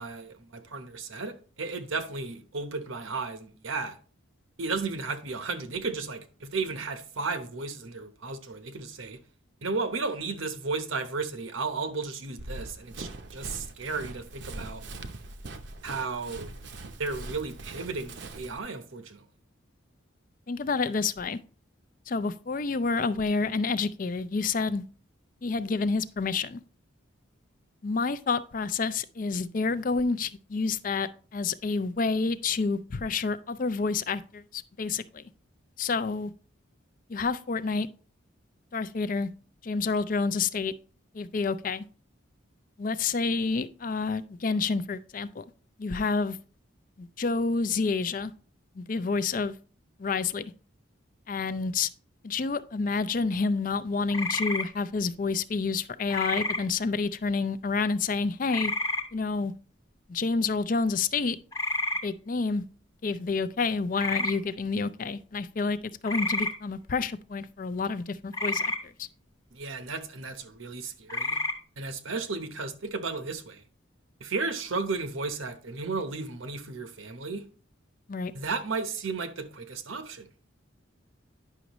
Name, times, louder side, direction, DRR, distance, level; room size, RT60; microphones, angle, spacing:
voice 1, 0.0-4.0 4.6-9.2 9.6-14.8 15.8-16.5 17.0-19.2 69.5-71.4 71.8-73.6 74.2-77.4 78.3-80.3, right 4 dB, 80° right, 1.0 m, -34 dB
Run, 12.4-18.6, right 2 dB, 60° right, 0.7 m, -42 dB
voice 2, 20.5-21.4 22.1-24.8 25.4-26.6 27.8-35.2 35.8-36.3 37.1-37.9 38.7-39.3 39.6-40.7 41.1-41.9 42.8-45.4 45.8-46.4 47.0-48.3 48.8-49.6 50.0-50.5 51.3-51.9 52.2-58.7 59.1-59.5 60.1-61.4 62.0-62.7 63.0-69.1 78.1-78.3, left 4 dB, 40° left, 0.4 m, -29 dB
sound 1, 54.1-54.7 56.1-56.6 58.5-59.0 61.5-62.0 64.0-64.3 66.0-66.5 68.3-68.8 71.1-71.5, left 1 dB, 15° left, 0.8 m, -29 dB
9.8 x 6.1 x 3.0 m
head